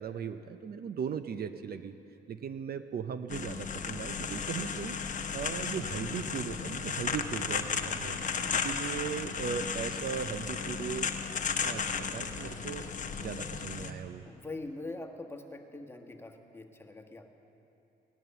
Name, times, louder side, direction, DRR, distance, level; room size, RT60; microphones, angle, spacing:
voice 1, 0.0-2.0 2.3-11.1 11.6-12.8 13.2-14.2, right 7 dB, 50° right, 10 dB, 0.6 m, -38 dB
sound 1, 3.3-13.9, left 6 dB, 40° left, 0.9 m, -34 dB
voice 2, 14.2-17.3, left 2 dB, 10° left, 3 dB, 1.4 m, -43 dB
17.0 x 11.0 x 6.8 m, 2.8 s
cardioid pair, 90°, 20 cm